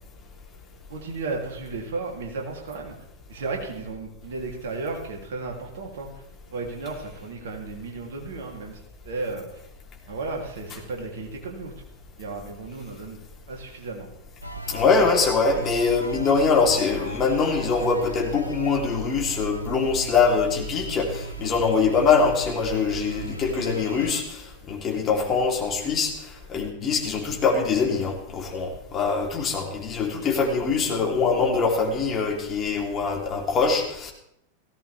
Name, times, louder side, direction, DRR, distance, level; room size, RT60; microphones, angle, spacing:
voice 1, 0.9-3.0 3.3-6.1 6.5-8.8 9.0-9.5 10.1-11.7 12.2-13.2 13.5-14.1, right 3 dB, 60° right, 1 dB, 3.3 m, -34 dB
sound 1, 14.4-24.2, right 3 dB, 90° right, 1.2 m, -36 dB
voice 2, 14.7-26.1 26.5-34.1, left 5 dB, 25° left, 0 dB, 3.7 m, -23 dB
18.0 x 16.5 x 3.6 m, 0.77 s
figure-of-eight pair, 90°, 0 cm